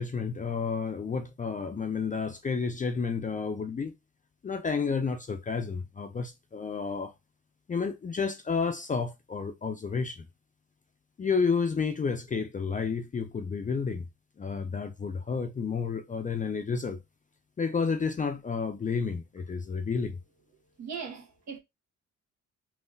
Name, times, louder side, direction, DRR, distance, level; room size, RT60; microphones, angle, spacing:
voice 1, 0.0-3.9 4.4-7.1 7.7-10.3 11.2-14.1 14.4-17.0 17.6-20.2, left 5 dB, 25° left, 0.5 m, -31 dB
voice 2, 20.8-21.6, right 6 dB, 60° right, 1.1 m, -39 dB
3.7 x 2.4 x 2.5 m
cardioid pair, 90°, 30 cm